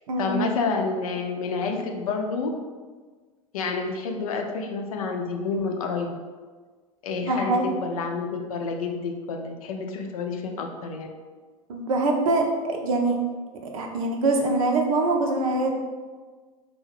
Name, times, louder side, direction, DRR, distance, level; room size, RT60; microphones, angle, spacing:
voice 1, 0.2-2.5 3.5-6.2 7.0-11.1, left 4 dB, 75° left, 4 dB, 0.5 m, -29 dB
voice 2, 7.2-7.7 11.7-13.2 13.7-15.7, right 2 dB, 70° right, 2 dB, 0.6 m, -23 dB
2.8 x 2.1 x 4.0 m, 1.4 s
hypercardioid pair, 80°, 18 cm